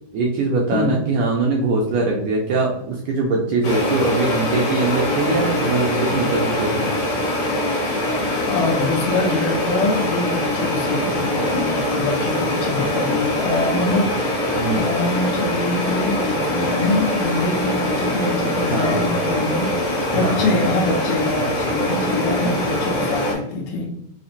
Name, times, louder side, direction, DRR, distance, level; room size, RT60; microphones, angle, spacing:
voice 1, 0.1-6.9 14.5-14.8 18.7-19.0 20.1-20.5 22.4-22.6, right 3 dB, 80° right, -2 dB, 1.9 m, -22 dB
sound 1, 3.6-23.3, left 1 dB, 60° left, 1.5 m, -23 dB
voice 2, 8.5-14.3 14.7-19.7 20.1-23.9, left 2 dB, 75° left, 0 dB, 2.2 m, -24 dB
5.8 x 2.2 x 2.6 m, 0.74 s
omnidirectional pair, 4.2 m